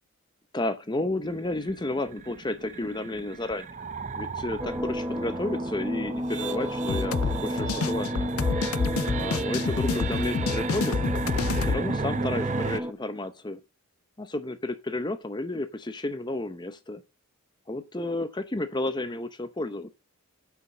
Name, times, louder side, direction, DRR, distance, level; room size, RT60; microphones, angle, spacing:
voice 1, 0.5-3.8 4.1-8.3 9.1-11.0 11.6-13.6 14.2-17.0 17.7-19.9, left 2 dB, 20° left, 0.7 m, -32 dB
sound 1, 1.2-12.8, right 4 dB, 35° right, 0.5 m, -34 dB
sound 2, 4.6-12.9, equal, 10° right, 0.9 m, -32 dB
sound 3, 6.9-11.8, left 5 dB, 80° left, 0.5 m, -28 dB
9.7 x 6.0 x 5.5 m
head